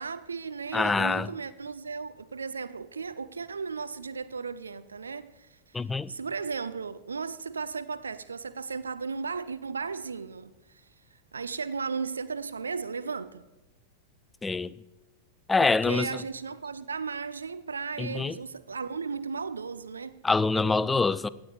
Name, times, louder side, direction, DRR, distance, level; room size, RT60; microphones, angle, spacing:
voice 1, 0.0-5.6 6.1-10.8 11.3-13.4 15.6-20.2, right 5 dB, 75° right, 0.4 m, -35 dB
voice 2, 0.7-1.3 5.7-6.1 14.4-14.7 15.5-16.1 18.0-18.3 20.2-21.3, left 4 dB, 10° left, 0.3 m, -25 dB
17.0 x 7.2 x 4.9 m
figure-of-eight pair, 90°, 0 cm